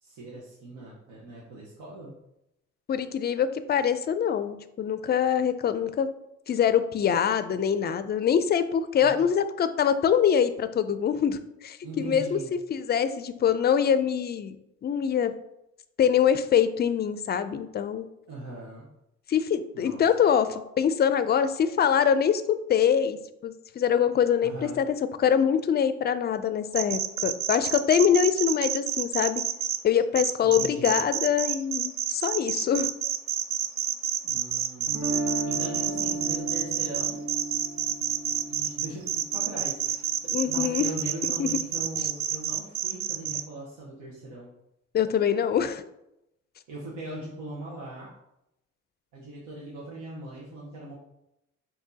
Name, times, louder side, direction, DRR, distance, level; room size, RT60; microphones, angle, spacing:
voice 1, 0.0-2.1 9.0-9.3 11.8-12.5 18.3-18.9 19.7-20.0 24.4-24.9 30.4-31.0 34.2-35.0 35.3-37.2 38.5-40.1 40.4-44.5 46.7-48.1 49.1-50.9, right 2 dB, 90° right, -6 dB, 1.1 m, -40 dB
voice 2, 2.9-6.1 6.5-12.4 12.7-14.6 14.8-15.3 16.0-18.0 19.3-23.2 23.4-29.4 29.8-32.9 40.3-40.9 41.4-41.5 44.9-45.8, left 8 dB, 35° left, 12 dB, 0.4 m, -24 dB
sound 1, 26.7-29.8 30.2-43.4, right 9 dB, 50° right, 0.4 m, -28 dB
Guitar, 34.9-40.9, right 2 dB, 65° right, 0.9 m, -35 dB
5.8 x 2.8 x 2.8 m, 0.85 s
cardioid pair, 90°, 30 cm